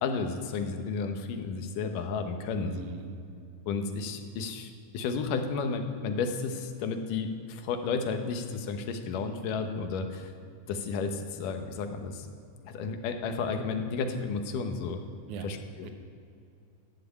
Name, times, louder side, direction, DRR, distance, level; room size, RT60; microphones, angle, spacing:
voice 1, 0.0-2.7 3.7-10.3 10.7-12.3 12.6-15.0 15.4-15.9, left 5 dB, 80° left, 6 dB, 2.6 m, -32 dB
voice 2, 2.5-3.2 15.3-15.5 15.8-15.9, right 6 dB, 70° right, 6 dB, 2.4 m, -39 dB
12.0 x 9.4 x 8.6 m, 2.5 s
omnidirectional pair, 3.7 m